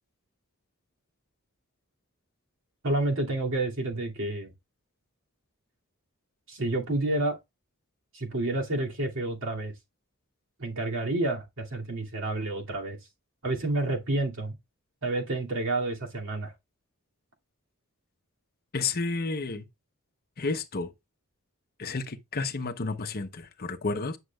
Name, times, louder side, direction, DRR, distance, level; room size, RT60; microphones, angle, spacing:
voice 1, 2.8-4.5 6.5-7.4 8.1-9.7 10.6-13.0 13.4-14.5 15.0-16.5, right 2 dB, 65° right, 2.5 m, -29 dB
voice 2, 18.7-19.6 20.4-20.9 21.8-24.2, left 3 dB, 45° left, 0.9 m, -31 dB
9.5 x 6.4 x 2.3 m
head